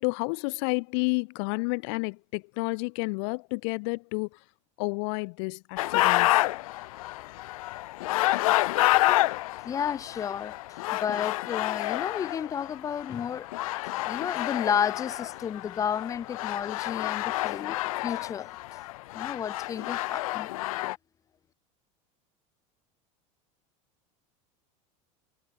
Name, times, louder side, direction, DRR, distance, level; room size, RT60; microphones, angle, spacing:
voice 1, 0.0-4.4 4.8-6.4, left 35 dB, 55° left, 7.3 m, -30 dB
sound 1, 5.8-21.0, left 18 dB, 85° left, 6.0 m, -29 dB
voice 2, 8.9-13.8 14.0-18.5 19.1-20.5, left 8 dB, 20° left, 6.8 m, -32 dB
cardioid pair, 180°, 17 cm